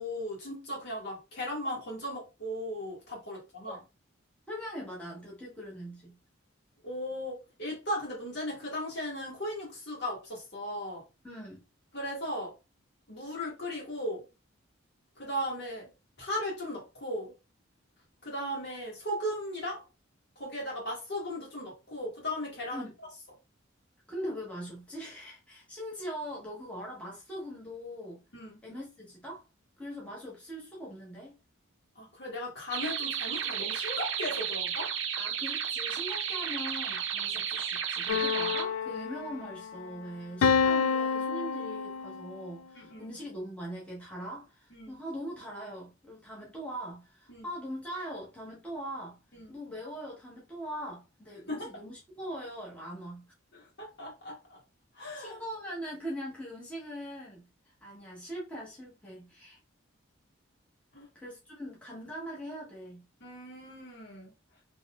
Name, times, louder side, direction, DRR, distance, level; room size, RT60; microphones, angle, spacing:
voice 1, 0.0-3.8 6.8-11.0 11.9-12.5 13.1-14.2 15.2-15.9 16.2-17.3 18.2-19.8 20.4-22.9 28.3-28.6 32.0-34.9 42.8-43.1 44.7-45.0 47.3-47.5 49.3-49.5 51.5-51.7 53.5-54.6 54.9-55.4 60.9-61.1 63.2-64.3, equal, 55° left, 2.0 m, -37 dB
voice 2, 4.5-6.2 11.2-11.6 22.7-22.9 24.1-28.2 28.6-29.4 29.8-31.3 35.1-49.2 49.5-53.2 55.2-59.6 61.1-63.0, equal, 5° left, 1.3 m, -41 dB
sound 1, 32.7-38.6, right 8 dB, 65° right, 0.6 m, -33 dB
sound 2, 38.1-39.7 40.4-42.4, left 6 dB, 90° left, 0.4 m, -28 dB
4.1 x 3.1 x 2.4 m
head